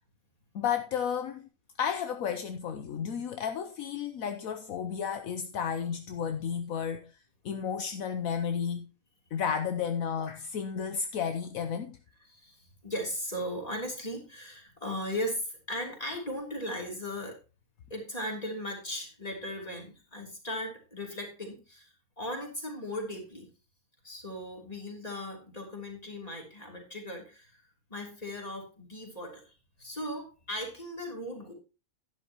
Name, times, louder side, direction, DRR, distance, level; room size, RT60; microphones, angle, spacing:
voice 1, 0.5-1.5 1.8-7.0 7.4-8.9 9.3-12.0, left 7 dB, 70° left, 1.2 m, -32 dB
voice 2, 12.2-17.4 17.9-23.5 24.0-27.6 27.9-31.5, equal, 25° left, 3.3 m, -37 dB
11.5 x 10.5 x 2.9 m
omnidirectional pair, 1.5 m